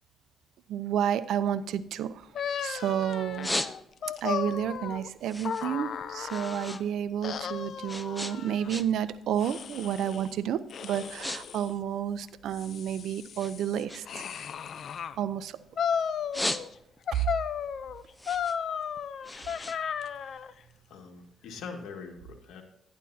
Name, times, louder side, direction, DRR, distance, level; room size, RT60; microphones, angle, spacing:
voice 1, 0.7-2.3 2.6-3.6 4.2-14.3 15.2-15.6 17.1-17.2, right 9 dB, 75° right, 13 dB, 0.6 m, -31 dB
sound 1, 1.7-2.8 3.2-4.2 4.6-6.8 7.1-9.1 9.4-9.8 10.4-10.6 10.9-11.4 11.7-12.9 13.4-15.7 16.1-17.1 17.5-20.7, left 1 dB, 10° left, 0.7 m, -37 dB
sound 2, 2.3-6.8 7.2-8.8 9.4-10.3 10.7-11.7 12.3-15.2 15.8-16.7 17.1-20.5, left 7 dB, 60° left, 0.5 m, -35 dB
voice 2, 20.9-22.6, left 5 dB, 80° left, 3 dB, 2.0 m, -43 dB
11.5 x 10.5 x 2.8 m, 0.81 s
cardioid pair, 90°, 0 cm